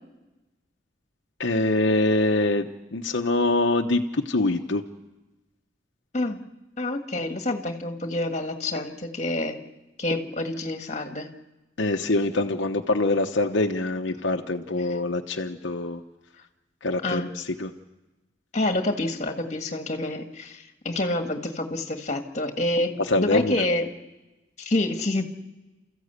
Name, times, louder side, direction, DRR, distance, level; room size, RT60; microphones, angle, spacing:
voice 1, 1.4-4.8 11.8-16.0 16.8-17.7 23.1-23.6, left 2 dB, 70° left, 3 dB, 1.0 m, -24 dB
voice 2, 6.8-9.6 10.0-11.3 17.0-17.3 18.5-23.8 24.6-25.2, left 2 dB, 35° left, 5 dB, 1.7 m, -27 dB
29.5 x 14.5 x 8.2 m, 1.1 s
head